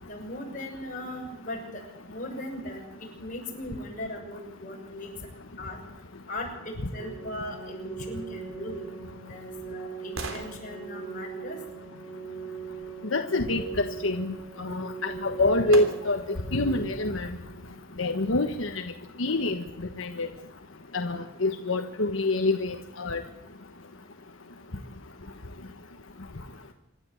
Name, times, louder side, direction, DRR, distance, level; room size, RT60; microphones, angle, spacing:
voice 1, 0.0-1.8 2.1-5.1 5.6-5.8 6.3-8.9 9.3-11.6, left 1 dB, 40° left, 1 dB, 6.3 m, -38 dB
Organ, 7.0-18.0, right 6 dB, 5° right, 3.3 m, -41 dB
sound 1, 8.8-12.7 14.8-14.9 15.7-16.4 16.9-17.0, right 2 dB, 85° right, 3.5 m, -42 dB
voice 2, 13.1-14.3 14.6-16.2 16.5-17.3 18.0-18.8 19.2-19.6 20.0-20.3 20.9-23.2, left 2 dB, 80° left, 6 dB, 1.3 m, -26 dB
26.5 x 12.5 x 8.1 m, 0.99 s
head